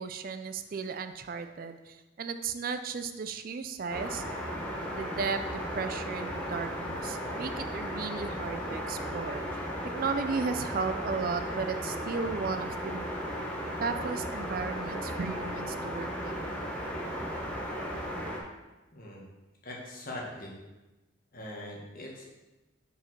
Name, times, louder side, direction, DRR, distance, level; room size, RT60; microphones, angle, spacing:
voice 1, 0.0-4.2 4.9-9.6 9.9-13.0 13.8-16.6, right 5 dB, 50° right, 9 dB, 0.4 m, -35 dB
sound 1, 3.9-18.4, equal, 5° left, 1.0 m, -35 dB
voice 2, 18.9-19.2 19.6-20.5 21.3-22.2, left 1 dB, 50° left, -2 dB, 1.5 m, -41 dB
5.1 x 4.8 x 6.0 m, 1.1 s
head